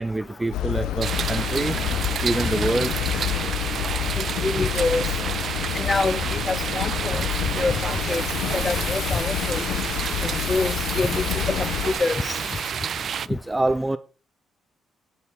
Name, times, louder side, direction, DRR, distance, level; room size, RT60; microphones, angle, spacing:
voice 1, 0.0-1.8 2.2-3.0 13.3-14.0, right 2 dB, 15° right, 0.6 m, -25 dB
sound 1, 0.5-11.9, left 11 dB, 90° left, 1.2 m, -28 dB
sound 2, 1.0-13.3, right 8 dB, 55° right, 0.4 m, -30 dB
voice 2, 4.2-5.0 5.7-6.2 6.5-7.3 7.5-8.2 8.5-9.6 10.2-12.2, left 3 dB, 25° left, 0.6 m, -26 dB
sound 3, 7.7-12.7, left 9 dB, 65° left, 1.0 m, -37 dB
10.5 x 8.4 x 4.3 m
cardioid pair, 90°, 0 cm